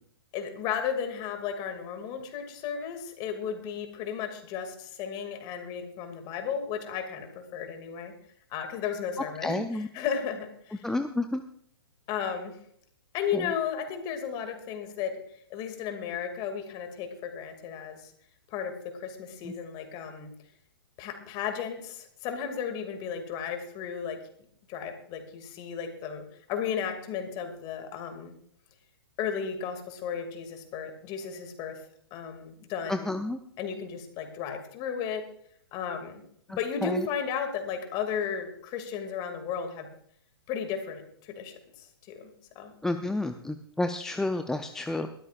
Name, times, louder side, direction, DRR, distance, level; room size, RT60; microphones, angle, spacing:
voice 1, 0.3-8.1 8.5-10.9 12.1-12.6 13.1-15.1 15.5-18.1 18.5-20.3 21.0-24.2 24.7-28.3 29.2-31.8 32.1-33.1 33.6-35.2 35.7-36.2 36.5-39.9 40.5-42.3 42.5-42.7, left 7 dB, 30° left, 6 dB, 2.5 m, -34 dB
voice 2, 9.4-9.9 10.8-11.4 13.3-13.4 19.5-19.6 32.9-33.4 36.8-37.0 42.8-45.1, left 2 dB, 5° left, 8 dB, 0.5 m, -30 dB
21.0 x 13.0 x 2.5 m, 0.65 s
figure-of-eight pair, 115°, 13 cm